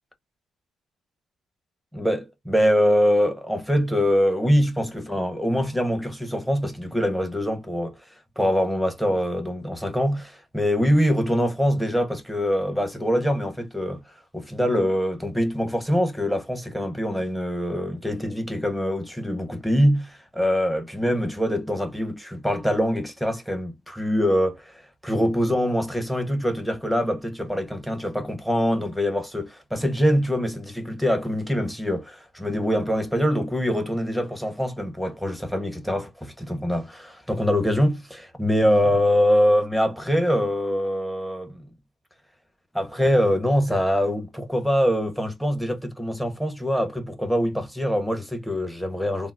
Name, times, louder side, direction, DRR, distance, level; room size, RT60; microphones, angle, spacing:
voice 1, 1.9-8.0 8.4-14.0 14.3-41.7 42.7-49.3, equal, ahead, 1.0 m, -24 dB
3.7 x 2.0 x 2.5 m
cardioid pair, 90°, 0 cm